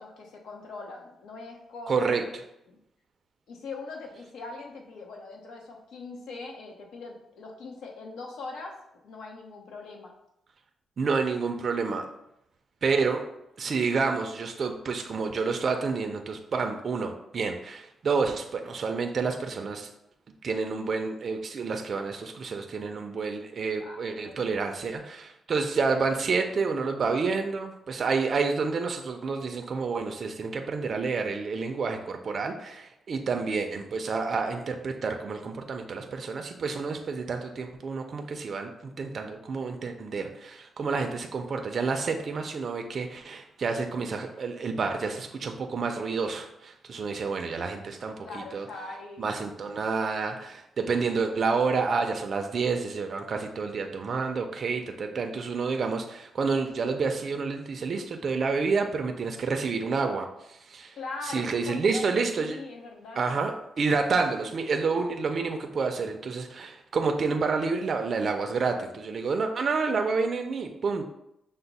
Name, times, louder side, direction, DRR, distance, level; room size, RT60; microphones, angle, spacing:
voice 1, 0.0-2.4 2.7-2.8 3.5-8.8 9.0-10.1 23.7-24.9 48.2-49.4 61.0-63.4, left 3 dB, 85° left, 0 dB, 0.8 m, -41 dB
voice 2, 1.9-2.2 11.0-12.1 12.8-13.2 13.6-19.9 20.4-48.7 49.2-61.0 61.2-62.6 63.2-71.1, right 4 dB, 40° right, 4 dB, 0.4 m, -29 dB
5.7 x 2.0 x 4.0 m, 0.82 s
cardioid pair, 145°, 0 cm